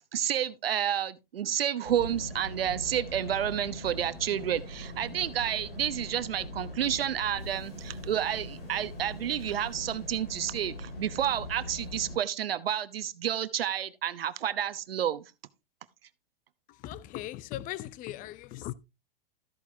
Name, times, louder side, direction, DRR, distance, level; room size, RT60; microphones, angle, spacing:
voice 1, 0.1-15.2, right 10 dB, 80° right, 0.9 m, -30 dB
sound 1, 1.8-12.2, left 1 dB, 90° left, 6.4 m, -41 dB
voice 2, 16.7-18.7, left 14 dB, 30° left, 0.6 m, -39 dB
13.5 x 8.4 x 2.7 m
hypercardioid pair, 120°, 29 cm